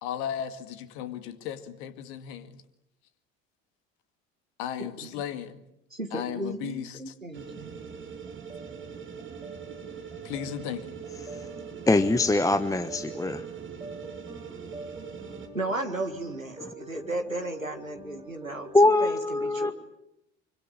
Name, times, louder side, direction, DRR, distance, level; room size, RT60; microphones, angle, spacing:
voice 1, 0.0-2.6 4.6-5.6 6.1-7.1 10.2-11.0, left 10 dB, 60° left, 10 dB, 2.2 m, -36 dB
voice 2, 4.8-5.1 5.9-7.7 15.5-19.7, right 2 dB, 90° right, 6 dB, 2.0 m, -35 dB
sound 1, 7.3-15.5, right 7 dB, 30° right, 3.7 m, -42 dB
sound 2, 8.1-19.1, right 2 dB, 10° right, 5.3 m, -46 dB
voice 3, 11.9-13.4 16.6-16.7 18.7-19.7, left 2 dB, 10° left, 11 dB, 1.1 m, -22 dB
25.5 x 24.0 x 8.8 m, 0.84 s
figure-of-eight pair, 60°, 39 cm